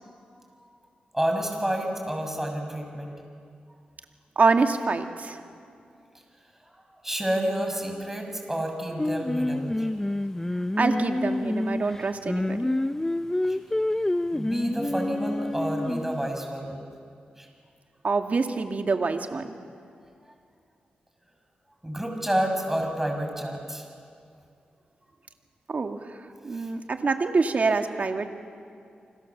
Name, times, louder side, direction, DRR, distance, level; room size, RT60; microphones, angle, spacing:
voice 1, 1.1-3.2 7.0-9.9 13.5-13.6 14.3-16.8 17.4-17.5 21.8-23.9 26.5-26.7, right 1 dB, 10° right, 3 dB, 6.6 m, -29 dB
voice 2, 4.4-5.4 10.8-12.8 18.0-19.6 25.7-26.0 26.4-28.3, right 4 dB, 50° right, 5 dB, 2.3 m, -25 dB
Singing, 9.0-16.3, left 1 dB, 15° left, 0.7 m, -28 dB
29.5 x 25.5 x 7.3 m, 2.4 s
cardioid pair, 60°, 3 cm